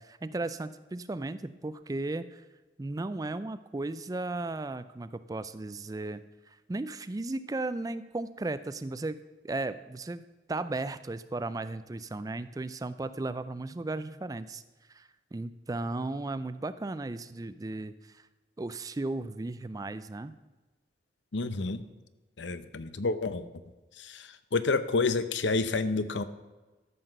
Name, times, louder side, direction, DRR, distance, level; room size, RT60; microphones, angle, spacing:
voice 1, 0.0-2.4 2.8-6.2 6.5-14.6 14.9-18.3 18.6-20.3, right 2 dB, 20° right, 13 dB, 0.4 m, -35 dB
voice 2, 21.3-21.8 22.4-23.4 24.0-26.2, left 3 dB, 85° left, 12 dB, 0.7 m, -29 dB
13.5 x 6.0 x 6.5 m, 1.2 s
head